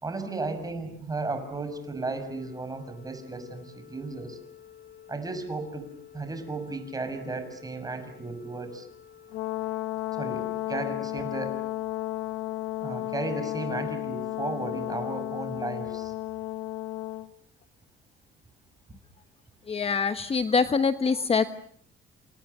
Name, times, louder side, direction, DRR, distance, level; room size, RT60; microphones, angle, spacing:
voice 1, 0.0-4.4 5.1-5.9 6.1-8.9 10.2-11.6 12.8-16.1, right 3 dB, 20° right, 9 dB, 6.4 m, -34 dB
Organ, 2.3-13.3, left 9 dB, 55° left, 2.6 m, -52 dB
Brass instrument, 9.3-17.3, left 16 dB, 85° left, 1.5 m, -33 dB
voice 2, 19.7-21.5, left 5 dB, 30° left, 10 dB, 1.2 m, -24 dB
28.5 x 28.0 x 6.7 m, 0.62 s
cardioid pair, 120°, 20 cm